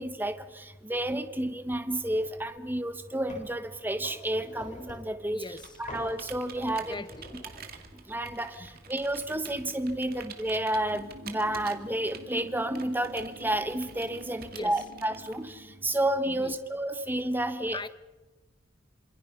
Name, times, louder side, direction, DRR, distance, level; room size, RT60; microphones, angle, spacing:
voice 1, 0.0-5.4 5.8-7.0 8.1-17.9, right 1 dB, 10° right, 1.4 m, -31 dB
sound 1, 2.1-2.4 2.8-3.6 4.0-5.2 5.9-6.2 6.6-7.9, left 1 dB, 35° left, 7.8 m, -46 dB
voice 2, 5.3-5.8 6.9-7.3 8.6-8.7 14.4-14.8 16.3-16.5 17.7-17.9, left 3 dB, 20° left, 0.9 m, -40 dB
Computer keyboard, 5.4-15.7, right 6 dB, 45° right, 2.3 m, -48 dB
sound 2, 10.9-16.4, right 1 dB, 70° right, 2.3 m, -49 dB
27.5 x 26.5 x 5.5 m
head